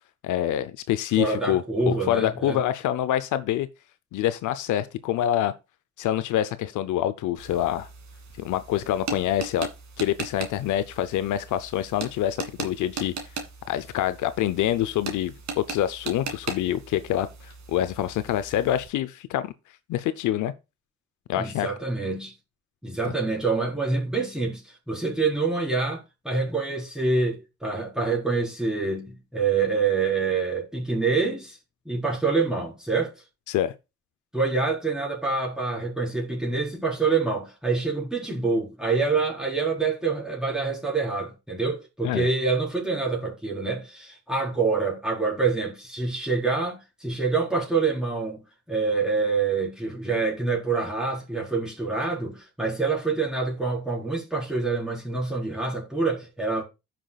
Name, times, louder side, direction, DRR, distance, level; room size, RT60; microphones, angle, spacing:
voice 1, 0.2-3.7 4.1-5.5 6.0-7.9 8.4-9.7 10.0-13.1 13.7-19.5 19.9-20.5 21.3-21.7 33.5-33.7 42.0-42.3, left 12 dB, 80° left, 0.6 m, -26 dB
voice 2, 1.1-2.6 21.4-22.3 22.8-31.6 31.8-33.1 34.3-48.4 48.7-56.6, right 4 dB, ahead, 4.3 m, -26 dB
sound 1, 7.4-18.9, right 5 dB, 65° right, 1.9 m, -39 dB
15.5 x 6.0 x 2.3 m
cardioid pair, 90°, 30 cm